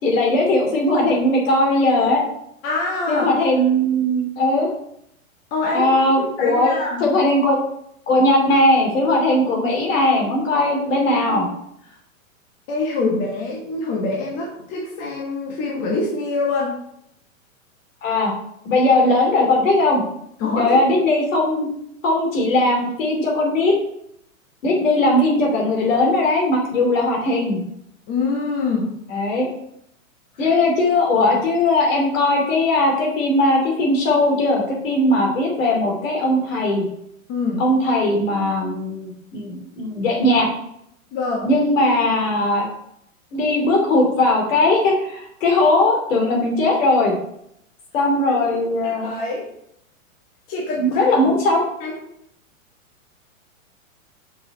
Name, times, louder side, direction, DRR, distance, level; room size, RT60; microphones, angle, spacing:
voice 1, 0.0-2.2 3.1-4.7 5.7-6.7 7.0-7.6 8.1-11.5 18.0-18.3 18.6-20.0 20.6-21.7 22.0-23.7 24.6-27.6 29.1-29.5 30.4-36.8 37.6-40.5 41.4-42.7 43.3-47.1 47.9-49.2 50.8-51.6, left 1 dB, 65° left, 1 dB, 2.7 m, -19 dB
voice 2, 2.6-3.3 5.5-7.1 12.7-16.7 20.4-20.8 28.1-28.9 30.4-30.5 37.3-37.6 41.1-41.5 48.3-48.4 48.8-49.5 50.5-51.9, left 3 dB, 35° left, -3 dB, 1.6 m, -25 dB
6.0 x 4.9 x 4.1 m, 0.74 s
hypercardioid pair, 130°, 41 cm